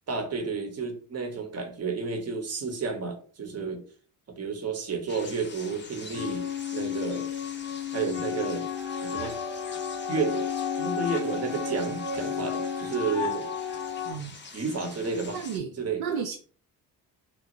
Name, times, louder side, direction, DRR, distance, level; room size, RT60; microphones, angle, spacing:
voice 1, 0.1-3.8 4.4-6.5 6.7-7.3 7.9-8.7 9.0-9.3 10.1-10.5 10.8-13.5 14.5-15.4 15.8-16.0, right 4 dB, 40° right, 6 dB, 0.9 m, -31 dB
sound 1, 5.1-15.6, left 4 dB, 30° left, 0.7 m, -46 dB
sound 2, 6.1-14.1, left 8 dB, 90° left, 0.7 m, -32 dB
Wind instrument woodwind instrument, 8.7-14.2, right 8 dB, ahead, 0.3 m, -44 dB
voice 2, 14.1-14.4 15.3-15.7 16.0-16.4, right 7 dB, 70° right, 3 dB, 0.5 m, -32 dB
3.0 x 2.2 x 2.5 m, 0.41 s
hypercardioid pair, 55°, 39 cm